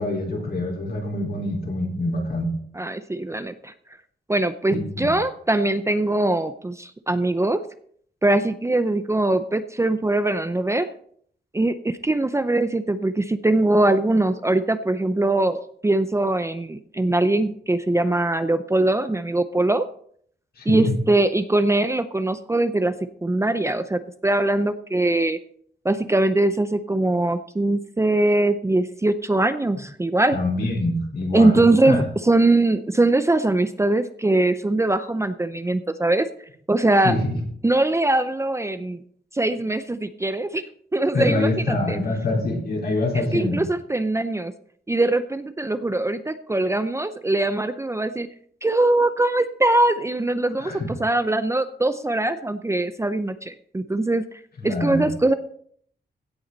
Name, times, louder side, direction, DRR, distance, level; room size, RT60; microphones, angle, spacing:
voice 1, 0.0-2.5 4.7-5.1 20.6-20.9 30.3-32.0 37.0-37.4 41.1-43.6 50.6-50.9 54.6-55.1, left 2 dB, 65° left, -1 dB, 4.2 m, -25 dB
voice 2, 2.8-3.7 4.3-7.6 8.2-10.9 11.5-19.9 20.7-22.9 23.2-25.4 25.8-30.4 31.3-36.3 36.7-37.2 37.6-39.0 39.3-40.6 40.9-42.0 43.3-44.5 44.9-48.3 48.6-50.7 51.0-54.2 54.6-55.3, right 2 dB, 15° right, 11 dB, 0.6 m, -22 dB
16.5 x 8.4 x 4.0 m, 0.62 s
wide cardioid pair, 130°, 18 cm